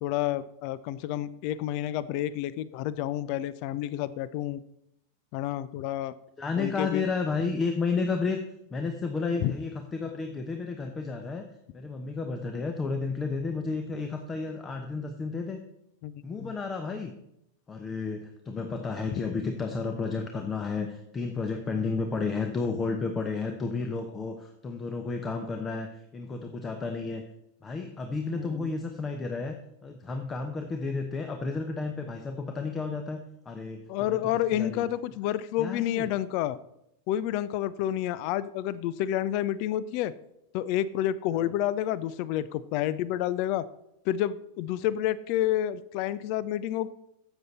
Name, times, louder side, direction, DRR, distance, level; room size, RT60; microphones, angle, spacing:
voice 1, 0.0-4.6 5.3-6.1 6.6-7.1 9.4-9.5 16.0-16.5 28.3-28.7 33.9-36.6 37.1-40.1 40.5-43.6 44.1-46.9, left 12 dB, 45° left, 18 dB, 0.5 m, -29 dB
voice 2, 6.4-8.4 8.7-11.5 11.7-15.6 16.2-17.1 17.7-27.2 27.6-29.6 29.8-34.2 34.5-34.9 35.6-36.1 41.4-41.5, left 4 dB, 20° left, 6 dB, 0.9 m, -32 dB
13.0 x 8.0 x 4.2 m, 0.80 s
figure-of-eight pair, 90°, 0 cm